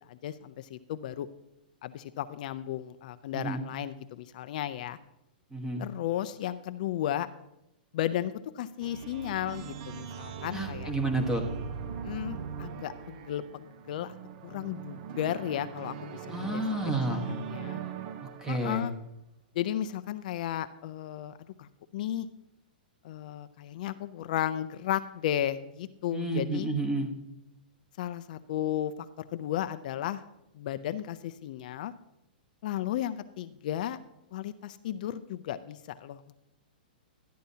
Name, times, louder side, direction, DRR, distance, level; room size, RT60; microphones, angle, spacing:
voice 1, 0.1-1.3 1.8-5.0 5.8-7.3 7.9-10.9 12.0-14.2 14.4-16.6 17.3-17.8 18.5-18.9 19.5-22.3 23.0-26.7 28.0-28.9 29.2-30.2 30.6-31.9 32.6-34.0 34.3-36.3, left 11 dB, 55° left, 11 dB, 0.4 m, -34 dB
voice 2, 5.5-5.8 10.5-11.4 16.3-17.3 18.2-18.8 26.1-27.1, right 2 dB, 10° right, 4 dB, 1.3 m, -30 dB
sound 1, 8.8-18.9, right 7 dB, 50° right, 0.7 m, -40 dB
13.0 x 10.0 x 2.8 m, 0.86 s
hypercardioid pair, 140°, 5 cm